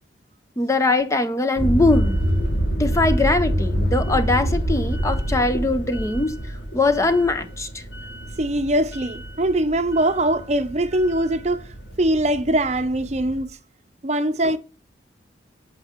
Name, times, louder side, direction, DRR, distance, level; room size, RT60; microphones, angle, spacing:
voice 1, 0.6-2.2 2.8-6.3 6.7-7.8, left 2 dB, 15° left, 0.5 m, -21 dB
sound 1, 1.6-13.4, equal, 80° left, 1.6 m, -26 dB
voice 2, 8.4-11.6 12.0-13.6 14.0-14.6, right 1 dB, 35° right, 0.6 m, -22 dB
9.0 x 7.4 x 3.6 m
head